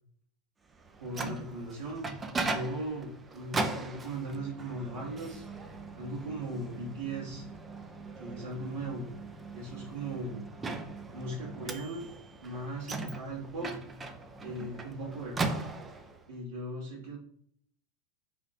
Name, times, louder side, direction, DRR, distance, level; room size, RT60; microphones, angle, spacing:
Microwave oven, 0.8-16.2, right 3 dB, 15° right, 0.4 m, -39 dB
voice 1, 1.0-2.1 2.5-5.4 6.0-7.5 8.2-9.1 9.5-10.4 11.1-12.0 12.4-13.7 14.4-15.6 16.3-17.2, right 1 dB, 60° right, -9 dB, 1.5 m, -38 dB
3.4 x 2.4 x 4.1 m, 0.64 s
figure-of-eight pair, 90°, 0 cm